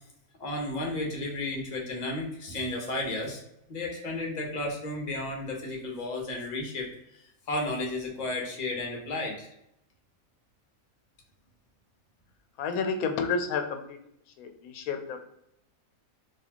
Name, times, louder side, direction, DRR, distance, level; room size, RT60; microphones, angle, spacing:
voice 1, 0.4-3.4 3.7-6.9 7.5-9.5, left 2 dB, 35° left, 0 dB, 0.9 m, -33 dB
voice 2, 12.6-14.0 14.4-15.2, left 5 dB, 85° left, 6 dB, 1.0 m, -30 dB
4.0 x 2.7 x 2.8 m, 0.78 s
omnidirectional pair, 1.4 m